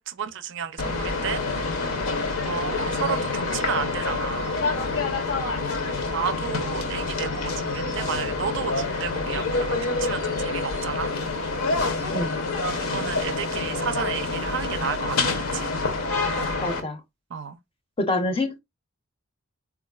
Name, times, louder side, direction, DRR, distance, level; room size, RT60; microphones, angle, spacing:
voice 1, 0.0-1.4 1.8-2.0 2.5-4.5 6.1-11.1 12.8-15.7 17.3-17.6, right 7 dB, 55° right, 0.4 m, -32 dB
sound 1, 0.8-16.8, left 3 dB, 75° left, 0.7 m, -27 dB
voice 2, 16.6-17.0 18.0-18.6, left 2 dB, 25° left, 0.5 m, -26 dB
3.8 x 2.4 x 2.2 m
head